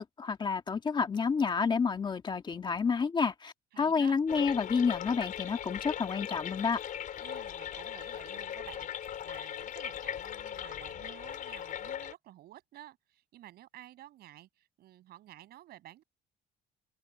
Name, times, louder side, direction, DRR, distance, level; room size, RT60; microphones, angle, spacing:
voice 1, 0.0-6.8, left 5 dB, 30° left, 1.7 m, -29 dB
voice 2, 3.7-4.1 7.2-8.9 9.2-16.0, right 14 dB, 70° right, 6.5 m, -52 dB
sound 1, 4.3-12.1, left 10 dB, 55° left, 4.1 m, -39 dB
open air
cardioid pair, 130°, 17 cm